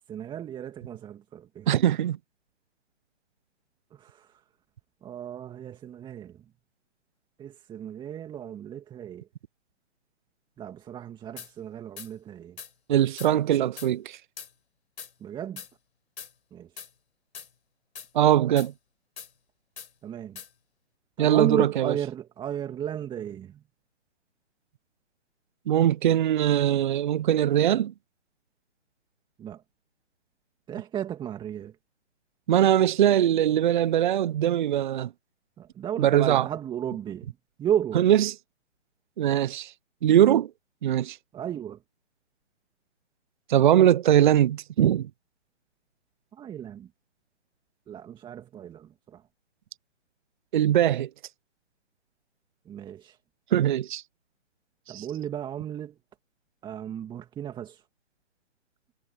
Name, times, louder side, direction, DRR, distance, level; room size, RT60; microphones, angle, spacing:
voice 1, 0.1-1.7 4.0-4.3 5.0-6.4 7.4-9.3 10.6-12.6 15.2-15.6 16.5-16.7 20.0-20.4 21.2-23.6 29.4-29.6 30.7-31.7 35.6-38.0 41.3-41.8 46.3-46.9 47.9-49.2 52.7-53.2 54.9-56.0 56.6-57.8, right 10 dB, 10° right, 2.3 m, -34 dB
voice 2, 1.7-2.2 12.9-14.2 18.1-18.7 21.2-21.9 25.7-27.9 32.5-35.1 36.0-36.5 37.9-38.3 39.2-39.7 40.0-40.5 40.8-41.2 43.5-45.1 50.5-51.1 53.5-54.0 54.9-55.1, right 11 dB, 40° right, 0.7 m, -21 dB
sound 1, 11.4-11.5 12.0-12.1 12.6-12.7 13.2-13.3 13.8-13.9 14.4-14.5 15.0-15.1 15.6-15.7 16.2-16.3 16.8-16.9 17.3-17.5 17.9-18.1 18.6-18.7 19.2-19.3 19.8-19.9 20.3-20.5, left 7 dB, 65° left, 4.6 m, -41 dB
figure-of-eight pair, 140°, 36 cm